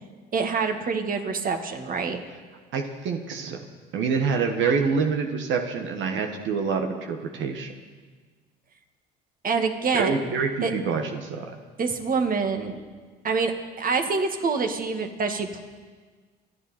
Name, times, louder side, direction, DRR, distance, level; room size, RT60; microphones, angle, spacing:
voice 1, 0.3-2.2 9.4-10.3 10.6-10.7 11.8-12.8 13.2-15.6, right 4 dB, 40° right, 6 dB, 2.0 m, -26 dB
voice 2, 2.7-3.6 3.9-7.7 9.9-11.5, right 5 dB, 65° right, 4 dB, 1.5 m, -26 dB
27.0 x 9.9 x 4.4 m, 1.5 s
supercardioid pair, 75°, 21 cm